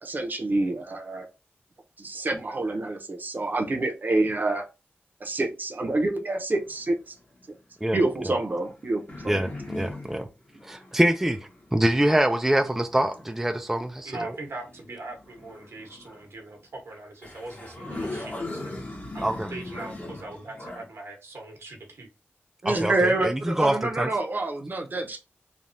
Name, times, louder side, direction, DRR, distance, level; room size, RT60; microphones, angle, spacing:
voice 1, 0.0-1.3 2.0-4.6 5.2-7.1 7.9-9.4 22.6-25.2, right 2 dB, 45° right, 0.8 m, -27 dB
sound 1, 6.5-7.4 8.2-13.6 14.5-16.3 16.9-17.0 17.2-20.9, left 2 dB, 40° left, 1.0 m, -40 dB
voice 2, 9.3-10.2 10.6-11.4 11.7-14.1 19.2-19.5 22.7-24.1, right 1 dB, 5° right, 0.4 m, -24 dB
voice 3, 14.0-18.8 19.1-22.1, right 2 dB, 75° right, 1.1 m, -41 dB
3.3 x 2.3 x 2.6 m
cardioid pair, 65°, 4 cm